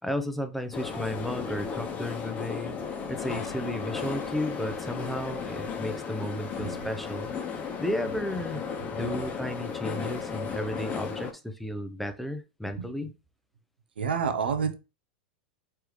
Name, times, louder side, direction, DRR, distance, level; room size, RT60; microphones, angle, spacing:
voice 1, 0.0-2.8 3.1-7.3 7.8-8.6 8.9-13.1, left 1 dB, ahead, 0.7 m, -33 dB
sound 1, 0.7-11.3, left 6 dB, 30° left, 1.0 m, -35 dB
voice 2, 14.0-14.7, right 6 dB, 80° right, 0.8 m, -28 dB
4.7 x 3.4 x 3.1 m
hypercardioid pair, 100°, 5 cm